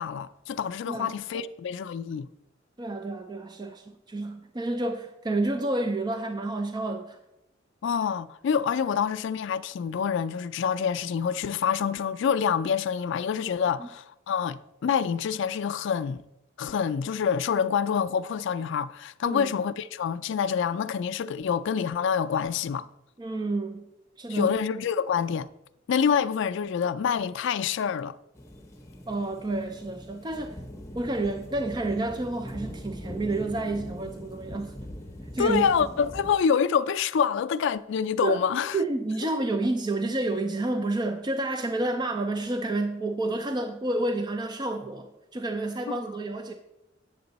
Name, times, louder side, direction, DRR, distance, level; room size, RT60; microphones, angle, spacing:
voice 1, 0.0-2.3 7.8-16.2 16.6-22.9 24.3-25.5 25.9-28.2 35.4-38.8, left 7 dB, 65° left, 0.3 m, -27 dB
voice 2, 0.9-1.4 2.8-7.2 13.8-13.9 19.2-19.5 23.2-23.9 24.2-24.5 29.1-30.6 30.9-34.8 35.3-35.6 38.2-38.4 38.7-46.5, right 2 dB, 20° right, 0.4 m, -30 dB
sound 1, 28.4-36.3, equal, 15° left, 0.9 m, -41 dB
8.7 x 6.7 x 4.0 m
head